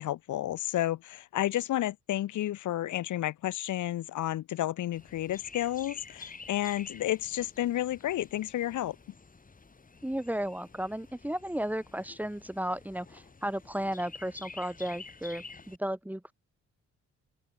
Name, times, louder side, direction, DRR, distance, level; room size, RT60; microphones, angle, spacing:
voice 1, 0.0-9.0, left 13 dB, 75° left, 1.9 m, -31 dB
Chirp tweet, 4.9-15.8, left 4 dB, 25° left, 6.7 m, -50 dB
voice 2, 10.0-16.3, right 1 dB, 5° right, 3.1 m, -34 dB
open air
cardioid pair, 90°, 30 cm